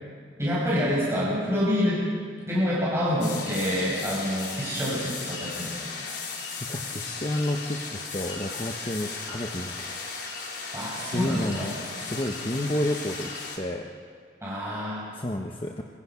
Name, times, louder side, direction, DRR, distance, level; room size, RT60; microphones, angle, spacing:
voice 1, 0.4-2.0 2.5-5.7 10.7-11.7 14.4-15.1, equal, 15° right, -8 dB, 5.7 m, -27 dB
sound 1, 3.2-13.6, left 4 dB, 60° left, 4.5 m, -36 dB
voice 2, 6.7-10.1 11.1-11.8 12.0-13.3 13.6-13.9 15.1-15.8, left 1 dB, 25° left, 1 dB, 1.1 m, -30 dB
24.0 x 23.0 x 5.9 m, 2.1 s
head